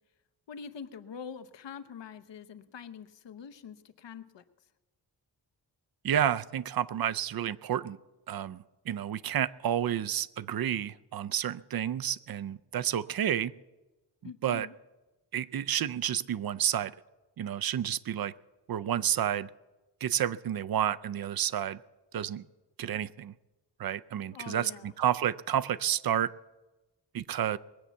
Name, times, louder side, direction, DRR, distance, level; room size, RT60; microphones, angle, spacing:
voice 1, 0.5-4.4 14.2-14.7 24.3-24.9, left 7 dB, 85° left, 11 dB, 0.9 m, -44 dB
voice 2, 6.0-8.0 8.3-13.5 14.4-14.7 15.3-16.9 17.4-18.3 18.7-19.5 20.0-21.8 22.1-22.4 22.8-23.3 23.8-26.3 27.1-27.6, right 10 dB, 60° right, 17 dB, 0.5 m, -30 dB
20.5 x 8.1 x 7.1 m, 1.1 s
wide cardioid pair, 125°, 42 cm